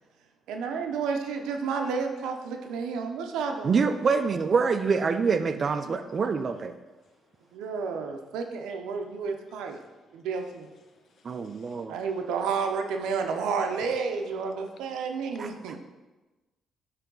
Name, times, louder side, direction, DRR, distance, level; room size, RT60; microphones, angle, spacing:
voice 1, 0.5-3.8 5.8-6.0 7.5-9.8 10.1-10.7 11.9-15.8, right 5 dB, 90° right, 4 dB, 0.6 m, -31 dB
voice 2, 3.6-6.7 11.2-12.0 15.4-15.5, right 5 dB, 45° right, 9 dB, 0.4 m, -25 dB
voice 3, 9.8-10.1 10.9-11.8, left 4 dB, 60° left, 4 dB, 0.8 m, -64 dB
9.2 x 3.3 x 3.9 m, 1.1 s
cardioid pair, 90°, 0 cm